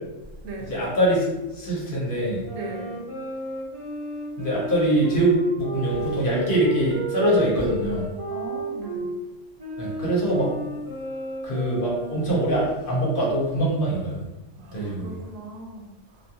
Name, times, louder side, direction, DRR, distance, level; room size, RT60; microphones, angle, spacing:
voice 1, 0.6-2.4 4.4-8.0 9.8-10.5 11.4-14.2 14.7-15.1, right 1 dB, 50° left, -5 dB, 0.8 m, -23 dB
sound 1, 2.4-9.1 9.6-12.6, right 1 dB, 30° right, 0.9 m, -33 dB
voice 2, 2.5-3.0 8.3-9.1 14.6-16.2, right 2 dB, 90° right, 1 dB, 1.0 m, -38 dB
2.3 x 2.3 x 2.8 m, 1.0 s
omnidirectional pair, 1.3 m